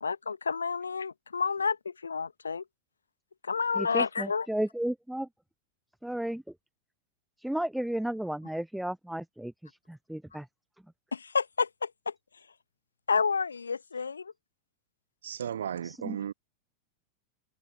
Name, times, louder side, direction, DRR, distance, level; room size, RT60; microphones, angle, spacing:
voice 1, 0.0-2.6 3.5-4.5 11.1-12.1 13.1-14.3, left 5 dB, 75° left, 1.4 m, -30 dB
voice 2, 3.8-5.3 6.0-6.4 7.4-10.5 15.8-16.2, right 1 dB, ahead, 0.3 m, -33 dB
voice 3, 15.2-16.3, right 9 dB, 65° right, 1.7 m, -35 dB
figure-of-eight pair, 90°, 0 cm